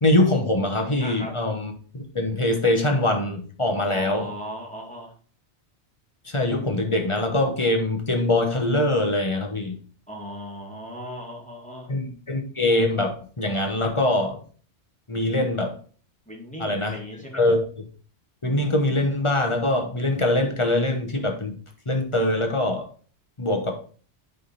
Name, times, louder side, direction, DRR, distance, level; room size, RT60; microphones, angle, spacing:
voice 1, 0.0-4.3 6.2-9.8 11.9-14.4 15.1-15.7 16.6-17.0 17.3-17.6 18.4-21.6 21.9-22.9 23.4-23.7, left 1 dB, 30° left, 1.1 m, -23 dB
voice 2, 1.0-1.3 3.8-5.1 10.1-11.9 16.3-17.4, equal, 5° left, 1.8 m, -37 dB
10.0 x 3.7 x 4.0 m
omnidirectional pair, 1.2 m